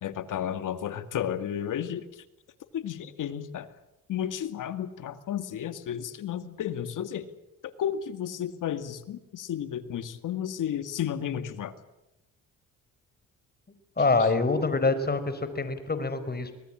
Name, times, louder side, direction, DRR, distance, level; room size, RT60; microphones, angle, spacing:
voice 1, 0.0-2.3 2.7-3.7 4.1-7.3 7.8-11.7 14.2-14.3, left 9 dB, 70° left, 11 dB, 2.2 m, -33 dB
voice 2, 14.0-16.5, left 3 dB, 30° left, 11 dB, 4.6 m, -25 dB
25.5 x 19.0 x 8.9 m, 0.92 s
cardioid pair, 70°, 32 cm